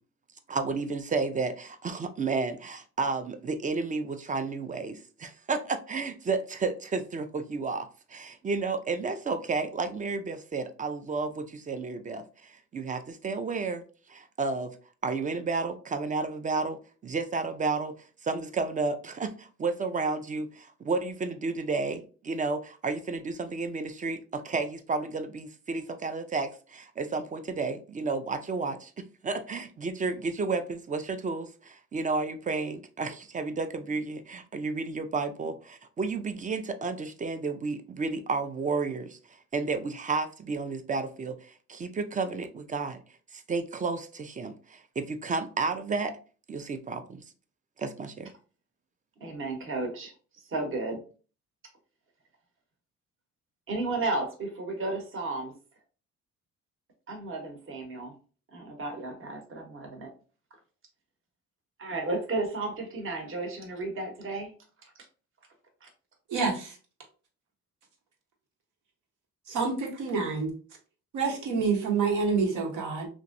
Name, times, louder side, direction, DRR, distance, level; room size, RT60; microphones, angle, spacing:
voice 1, 0.5-13.8 14.1-14.8 15.0-16.8 17.0-17.9 18.2-28.9 29.2-39.2 39.5-43.0 43.3-46.1 46.5-47.2 47.8-48.3, right 4 dB, 25° right, 9 dB, 0.4 m, -32 dB
voice 2, 49.2-50.1 50.5-51.0 53.7-55.5 57.1-58.1 58.5-60.1 61.8-64.5 64.8-64.9 65.8-65.9, right 2 dB, 45° right, 3 dB, 0.9 m, -33 dB
voice 3, 66.3-66.8 69.5-70.5 71.1-73.1, right 4 dB, 80° right, 1 dB, 1.0 m, -27 dB
3.0 x 2.5 x 2.5 m, 0.38 s
cardioid pair, 90°, 30 cm